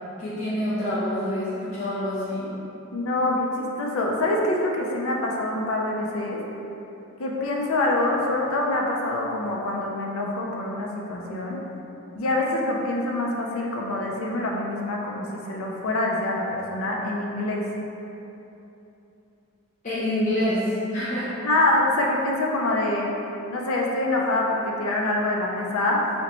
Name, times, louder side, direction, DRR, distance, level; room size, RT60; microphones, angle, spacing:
voice 1, 0.2-2.5 19.8-21.3, left 1 dB, 35° left, -10 dB, 0.4 m, -26 dB
voice 2, 2.9-6.4 7.2-11.6 12.2-17.6 21.4-23.1 23.5-26.1, left 2 dB, 90° left, -1 dB, 0.5 m, -25 dB
3.8 x 2.1 x 2.9 m, 2.9 s
head